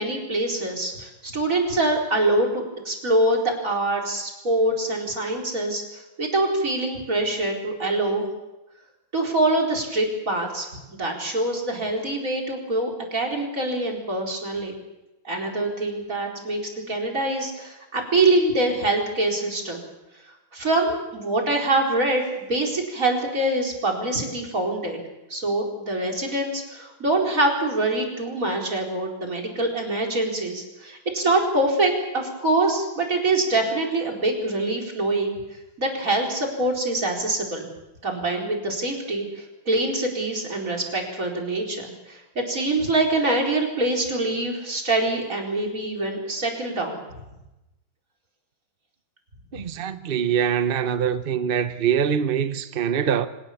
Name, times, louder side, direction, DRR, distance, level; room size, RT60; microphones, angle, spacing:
voice 1, 0.0-8.3 9.1-14.8 15.2-16.6 16.9-19.8 20.5-25.0 25.3-35.4 35.8-37.7 38.0-47.0, right 2 dB, 40° right, 4.8 m, -24 dB
voice 2, 49.5-53.3, right 8 dB, 60° right, 0.5 m, -24 dB
25.5 x 18.5 x 7.1 m
omnidirectional pair, 2.2 m